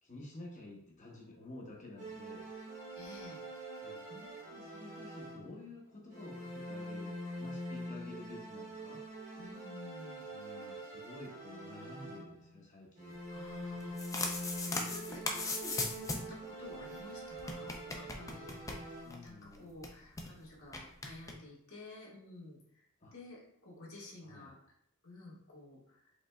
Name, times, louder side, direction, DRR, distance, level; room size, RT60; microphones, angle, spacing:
voice 1, 0.0-2.5 3.8-9.0 10.3-13.1 19.0-19.7 23.0-23.1 24.2-24.5, left 2 dB, 35° left, -2 dB, 0.9 m, -51 dB
sound 1, 2.0-5.7 6.1-12.6 13.0-19.4, right 1 dB, 35° right, 1.1 m, -45 dB
voice 2, 2.9-3.4 9.3-10.2 13.3-18.5 19.2-22.8 23.1-24.6 25.0-26.1, left 2 dB, 70° left, -5 dB, 1.6 m, -51 dB
sound 2, 13.7-16.4 16.7-16.8 16.9-17.0 17.4-19.3 19.5-19.6 19.8-20.3 20.7-21.3, left 3 dB, 15° left, 0.4 m, -38 dB
4.9 x 3.4 x 2.2 m, 0.72 s
head